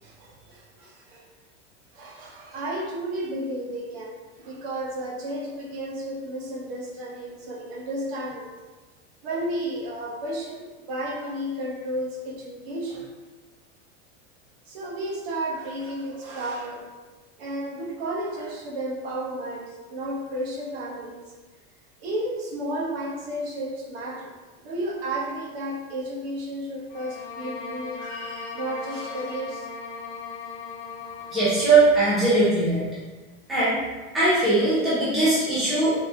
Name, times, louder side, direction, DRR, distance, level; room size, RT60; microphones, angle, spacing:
voice 1, 0.0-1.2 1.9-8.5 9.2-13.1 14.7-16.8 17.4-21.2 22.0-24.3 24.6-29.7 31.0-31.3, right 1 dB, 60° right, -1 dB, 1.2 m, -32 dB
sound 1, 26.9-31.7, left 5 dB, 50° left, 0.8 m, -38 dB
voice 2, 31.3-32.8 33.5-33.8 34.1-36.0, right 2 dB, ahead, -11 dB, 0.4 m, -20 dB
4.0 x 3.5 x 3.3 m, 1.3 s
supercardioid pair, 180°, 34 cm